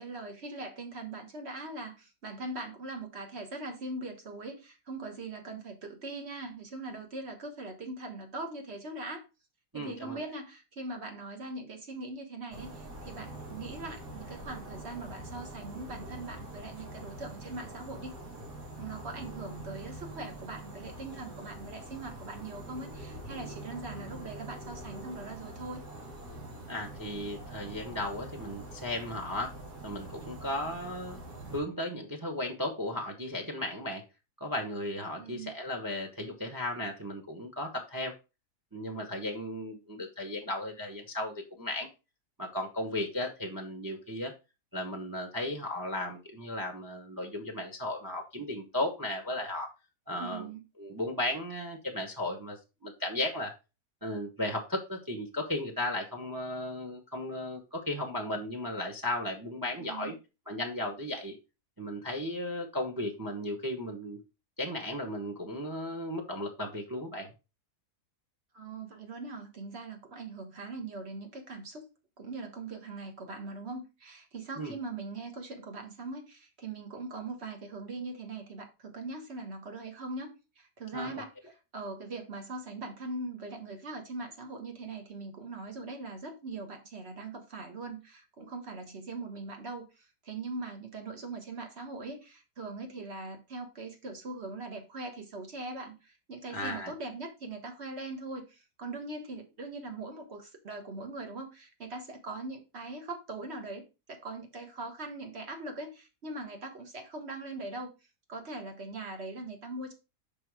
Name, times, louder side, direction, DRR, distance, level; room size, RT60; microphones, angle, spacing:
voice 1, 0.0-9.2 9.7-18.2 18.8-25.8 35.2-35.5 50.2-50.6 59.8-60.2 68.5-71.9 72.2-107.9 108.3-109.9, right 2 dB, 45° right, 4 dB, 1.6 m, -41 dB
voice 2, 9.7-10.2 23.9-24.1 26.7-29.5 29.8-31.2 31.5-34.0 34.4-38.1 38.7-41.9 42.4-44.3 44.7-49.7 50.1-50.5 50.8-53.5 54.0-60.1 60.5-61.4 61.8-64.2 64.6-67.3 74.6-74.7 80.9-81.1 96.5-96.9, left 1 dB, 15° right, 3 dB, 1.0 m, -35 dB
sound 1, 12.5-31.6, right 1 dB, 90° right, 2.4 m, -44 dB
5.4 x 4.8 x 4.7 m, 0.28 s
omnidirectional pair, 1.7 m